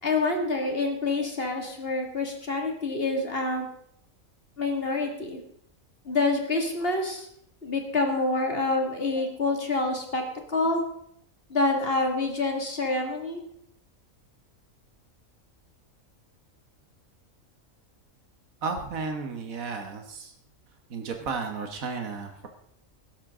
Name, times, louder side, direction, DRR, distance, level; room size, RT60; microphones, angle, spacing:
voice 1, 0.0-3.7 4.6-5.4 6.1-7.3 7.6-10.2 10.5-10.8 11.5-13.4, left 3 dB, 45° left, 3 dB, 2.4 m, -27 dB
voice 2, 18.6-20.3 20.9-22.5, right 4 dB, 90° right, 5 dB, 1.7 m, -33 dB
16.0 x 12.5 x 3.7 m, 0.70 s
omnidirectional pair, 1.4 m